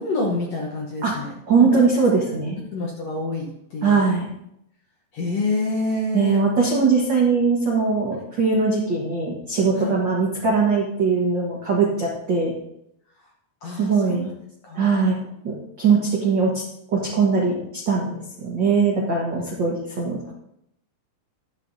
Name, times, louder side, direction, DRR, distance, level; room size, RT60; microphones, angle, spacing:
voice 1, 0.0-1.3 1.7-1.8 2.7-4.0 5.1-6.4 9.8-10.0 13.2-13.3 13.6-14.2 14.6-14.8, left 2 dB, 70° left, -1 dB, 1.6 m, -27 dB
voice 2, 1.5-2.6 3.8-4.3 6.1-12.5 13.8-14.3 14.7-15.1 15.4-16.6 16.9-20.2, right 4 dB, 85° right, -3 dB, 1.0 m, -21 dB
12.5 x 10.5 x 2.7 m, 0.79 s
omnidirectional pair, 4.5 m